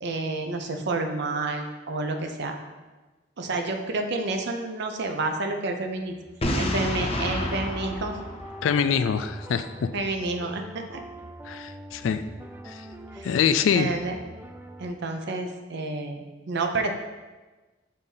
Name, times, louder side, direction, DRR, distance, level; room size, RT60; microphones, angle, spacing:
voice 1, 0.0-2.6 3.4-6.1 6.6-8.2 9.9-11.0 13.1-13.4 13.7-14.1 14.8-16.9, right 2 dB, 60° right, 4 dB, 0.6 m, -29 dB
sound 1, 5.9-14.9, right 1 dB, 10° right, 0.3 m, -44 dB
Boom, 6.4-9.3, left 1 dB, 30° left, 0.7 m, -29 dB
voice 2, 8.6-9.9 11.4-12.2 12.7-12.8 13.2-13.9, left 7 dB, 75° left, 10 dB, 0.3 m, -24 dB
6.5 x 2.8 x 5.4 m, 1.2 s
head